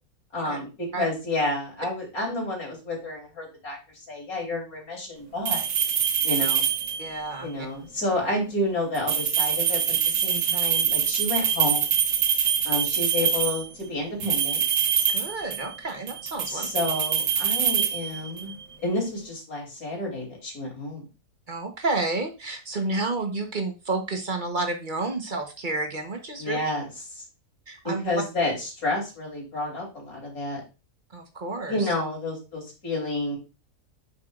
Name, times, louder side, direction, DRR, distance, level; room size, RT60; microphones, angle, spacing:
voice 1, 0.3-3.8 4.1-5.6 6.2-6.7 7.4-12.0 12.6-14.6 16.4-21.0 26.4-26.9 27.2-27.3 28.0-30.6 31.7-33.4, left 2 dB, 70° left, -1 dB, 3.6 m, -30 dB
sound 1, 5.5-7.2 9.0-13.7 14.2-15.8 16.1-18.5, right 8 dB, 85° right, 1.6 m, -24 dB
voice 2, 7.0-7.7 15.1-16.7 21.5-26.6 27.7-28.0 31.1-31.9, right 3 dB, 35° right, 4 dB, 1.2 m, -30 dB
9.5 x 5.8 x 2.5 m, 0.29 s
omnidirectional pair, 1.6 m